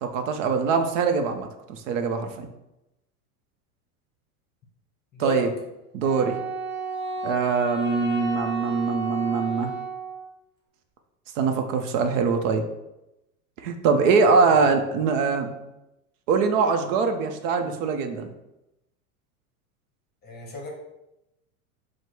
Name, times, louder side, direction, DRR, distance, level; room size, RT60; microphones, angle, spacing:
voice 1, 0.0-2.5 5.2-5.5 5.9-6.4 7.2-9.7 11.4-12.6 13.6-15.5 16.3-18.3, right 5 dB, 60° right, 6 dB, 0.7 m, -23 dB
voice 2, 5.1-5.5 14.3-14.6 20.2-20.7, equal, 20° left, 0 dB, 0.9 m, -33 dB
Wind instrument woodwind instrument, 6.0-10.3, right 1 dB, 25° right, 1.1 m, -32 dB
4.7 x 2.1 x 4.5 m, 0.91 s
supercardioid pair, 135°, 44 cm